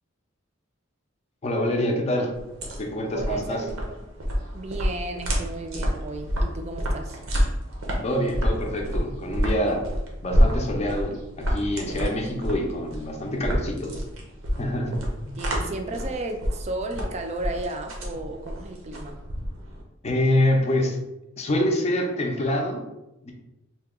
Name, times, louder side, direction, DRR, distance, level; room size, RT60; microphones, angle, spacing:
voice 1, 1.4-2.3 2.8-3.6 8.0-9.8 10.2-14.0 14.6-14.9 15.2-15.4 20.0-21.0 21.4-22.8 23.2-23.3, left 1 dB, 35° left, 2 dB, 0.5 m, -26 dB
sound 1, 2.3-19.8, equal, 85° right, 0.7 m, -28 dB
voice 2, 3.1-3.8 4.5-7.2 15.4-19.2, right 2 dB, 35° right, 4 dB, 0.4 m, -33 dB
2.8 x 2.2 x 3.5 m, 0.95 s
head